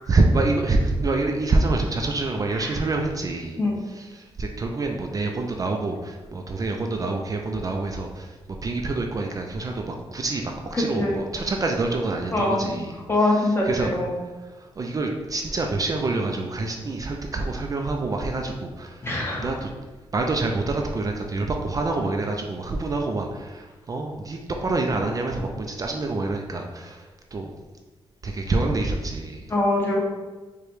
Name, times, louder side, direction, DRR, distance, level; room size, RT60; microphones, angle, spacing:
voice 1, 0.1-3.6 3.9-12.9 13.2-13.9 14.4-19.1 19.4-19.7 20.1-27.5 28.2-29.5, right 2 dB, 35° right, 2 dB, 0.3 m, -26 dB
voice 2, 10.7-11.2 12.3-12.7 13.1-14.1 19.0-19.5 29.5-30.0, left 2 dB, 25° left, -3 dB, 1.0 m, -23 dB
4.8 x 2.2 x 3.1 m, 1.3 s
wide cardioid pair, 110°, 10 cm